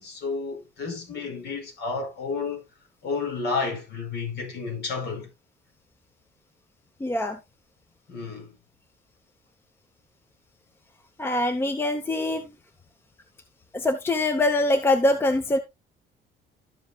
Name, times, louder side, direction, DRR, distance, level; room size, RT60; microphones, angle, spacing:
voice 1, 0.0-2.6 3.0-5.3 8.1-8.5, left 4 dB, 55° left, 5.1 m, -31 dB
voice 2, 7.0-7.4 11.2-12.5 13.7-15.6, left 2 dB, 10° left, 0.8 m, -23 dB
12.5 x 7.7 x 2.3 m
cardioid pair, 150°, 20 cm